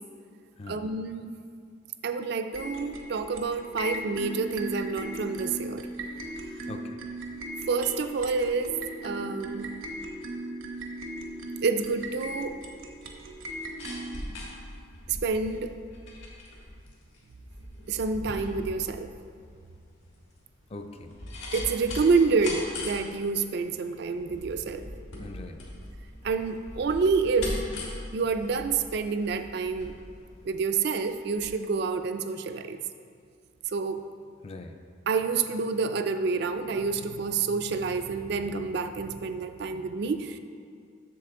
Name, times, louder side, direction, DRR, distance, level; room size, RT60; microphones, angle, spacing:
voice 1, 0.7-1.3 2.0-5.9 7.7-8.8 9.0-9.7 11.6-12.6 15.1-15.8 17.9-19.1 21.5-24.9 26.2-27.5 28.1-29.9 30.4-32.8 33.7-34.1 35.1-40.4, right 4 dB, 55° right, 8 dB, 0.3 m, -28 dB
sound 1, 2.5-14.2, right 1 dB, 80° right, 0.8 m, -38 dB
voice 2, 6.7-7.0 20.7-21.1 25.2-25.6 34.4-34.8, left 2 dB, 30° left, 6 dB, 0.4 m, -41 dB
sound 2, 13.4-31.1 31.4-31.5, left 1 dB, 80° left, 1.6 m, -40 dB
7.7 x 6.7 x 3.7 m, 2.3 s
head